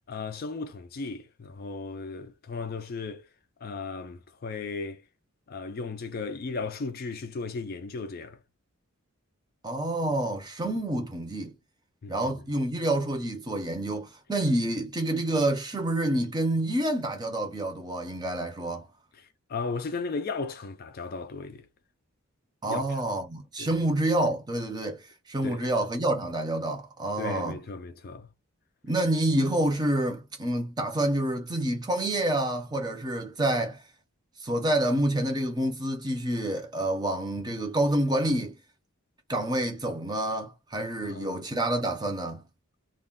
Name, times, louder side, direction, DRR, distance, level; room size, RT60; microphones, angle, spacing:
voice 1, 0.1-3.3 3.6-5.0 5.5-8.4 12.0-12.4 19.1-21.7 22.7-23.0 23.6-23.8 25.4-25.7 27.2-28.3 41.0-41.4, left 4 dB, 40° left, 0.3 m, -36 dB
voice 2, 9.6-11.5 12.1-18.9 22.6-27.6 28.8-33.8 34.4-38.6 39.3-42.4, right 1 dB, 20° right, 0.5 m, -28 dB
2.3 x 2.1 x 3.6 m
head